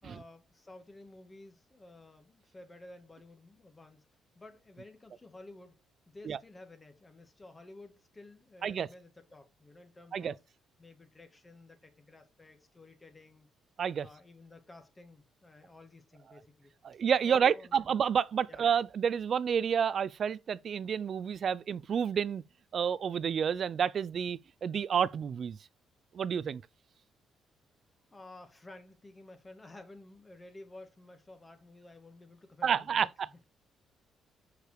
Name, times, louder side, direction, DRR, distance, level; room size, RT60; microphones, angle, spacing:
voice 1, 0.0-4.1 4.3-5.7 6.1-10.4 10.8-13.5 14.0-17.9 18.5-18.6 28.1-33.4, left 2 dB, 20° left, 1.8 m, -53 dB
voice 2, 16.8-22.4 22.7-25.6 26.1-26.6 32.6-33.1, right 7 dB, 55° right, 0.4 m, -29 dB
6.9 x 4.8 x 4.5 m
cardioid pair, 90°, 0 cm